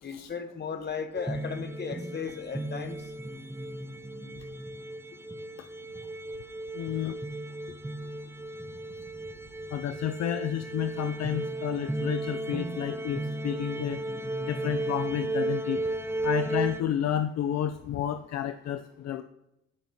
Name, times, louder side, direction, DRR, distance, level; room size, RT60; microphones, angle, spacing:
voice 1, 0.0-3.1, left 6 dB, 35° left, 8 dB, 1.1 m, -36 dB
sound 1, 1.1-16.8, right 2 dB, 10° right, 0.6 m, -35 dB
voice 2, 6.7-7.2 9.7-14.0 14.4-15.8 16.2-19.2, left 10 dB, 60° left, 9 dB, 0.5 m, -31 dB
14.5 x 5.7 x 2.8 m, 0.89 s
cardioid pair, 90°, 30 cm